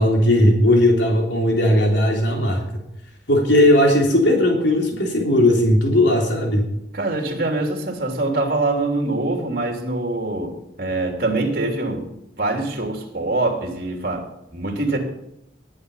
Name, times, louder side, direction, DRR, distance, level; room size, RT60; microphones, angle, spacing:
voice 1, 0.0-2.6 3.3-6.7, left 1 dB, 85° left, 1 dB, 3.4 m, -17 dB
voice 2, 6.9-12.1 12.4-15.0, right 2 dB, 55° right, 3 dB, 3.0 m, -24 dB
19.0 x 8.7 x 5.5 m, 0.82 s
head